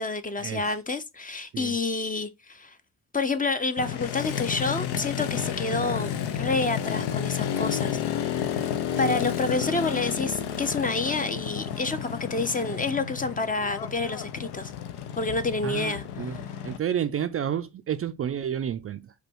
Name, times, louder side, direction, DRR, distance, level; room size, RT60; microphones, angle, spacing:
voice 1, 0.0-2.8 3.1-6.1 6.4-8.0 8.3-8.7 9.0-14.7 15.2-16.3, left 3 dB, 20° left, 0.6 m, -28 dB
Motorcycle, 3.8-16.8, left 9 dB, 70° left, 0.7 m, -31 dB
voice 2, 15.6-16.4 16.6-19.1, right 9 dB, 35° right, 0.4 m, -30 dB
4.9 x 2.3 x 4.5 m
supercardioid pair, 65°, 41 cm